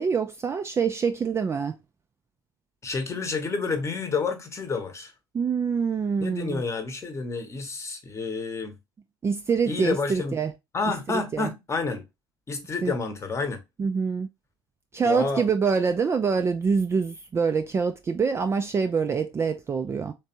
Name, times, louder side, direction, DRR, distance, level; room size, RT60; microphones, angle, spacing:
voice 1, 0.0-1.8 5.3-6.6 9.2-10.5 11.1-11.5 12.8-12.9 13.8-14.3 14.9-20.1, right 5 dB, 20° right, 0.4 m, -25 dB
voice 2, 2.8-5.1 6.2-8.8 9.7-10.4 10.7-12.0 12.5-13.6 15.1-15.5, left 4 dB, 25° left, 0.9 m, -29 dB
3.3 x 3.2 x 2.8 m
figure-of-eight pair, 65°, 13 cm